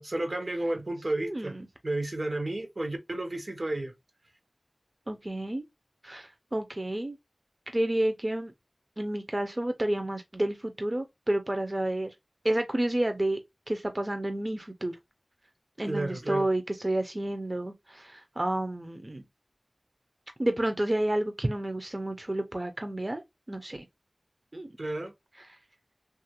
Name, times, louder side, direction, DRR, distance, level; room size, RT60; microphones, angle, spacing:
voice 1, 0.0-1.6 1.8-3.9 15.8-16.5 24.8-25.1, right 2 dB, 80° right, 0.7 m, -32 dB
voice 2, 1.2-1.6 5.1-5.6 6.0-7.2 7.7-8.5 9.0-12.1 12.4-13.4 13.7-15.0 15.8-19.2 20.4-23.2 23.5-23.9 24.5-24.7 25.4-25.5, right 1 dB, 40° right, 0.4 m, -30 dB
2.8 x 2.4 x 2.7 m
wide cardioid pair, 40°, 0 cm